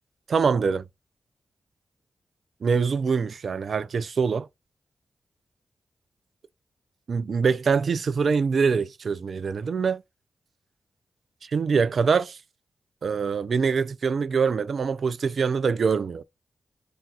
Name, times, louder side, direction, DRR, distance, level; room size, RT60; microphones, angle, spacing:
voice 1, 0.3-0.8 2.6-4.5 7.1-10.0 11.5-12.4 13.0-16.2, right 5 dB, 70° right, 0.3 m, -24 dB
2.4 x 2.2 x 4.0 m
cardioid pair, 50°, 0 cm